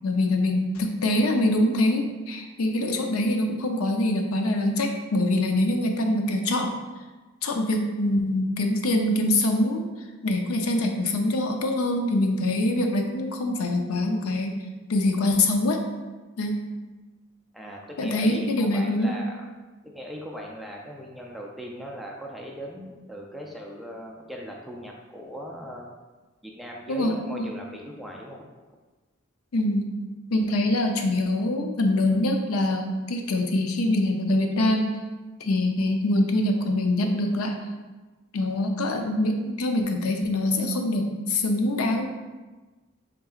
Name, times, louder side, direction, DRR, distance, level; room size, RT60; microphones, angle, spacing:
voice 1, 0.0-6.8 7.4-9.8 10.2-15.8 16.4-16.6 18.0-19.2 26.9-27.5 29.5-29.9 30.3-35.0 35.4-37.6 38.3-42.1, left 1 dB, 90° left, 4 dB, 0.6 m, -24 dB
voice 2, 17.5-19.3 19.8-25.9 26.4-28.4, equal, ahead, -2 dB, 0.4 m, -38 dB
5.7 x 3.7 x 2.4 m, 1.2 s
head